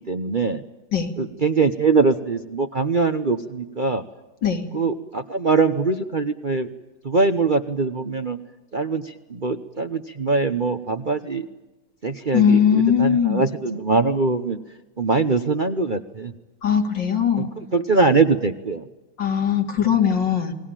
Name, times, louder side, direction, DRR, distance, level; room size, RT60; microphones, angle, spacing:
voice 1, 0.1-0.6 1.2-4.0 4.7-6.7 7.0-8.4 8.7-11.5 12.0-14.6 15.0-16.3 17.4-17.5 17.7-18.8, right 4 dB, 35° right, 7 dB, 0.9 m, -22 dB
voice 2, 12.3-13.4 16.6-17.5 19.2-20.5, left 8 dB, 70° left, 3 dB, 3.5 m, -20 dB
29.5 x 20.5 x 9.0 m, 1.1 s
omnidirectional pair, 2.0 m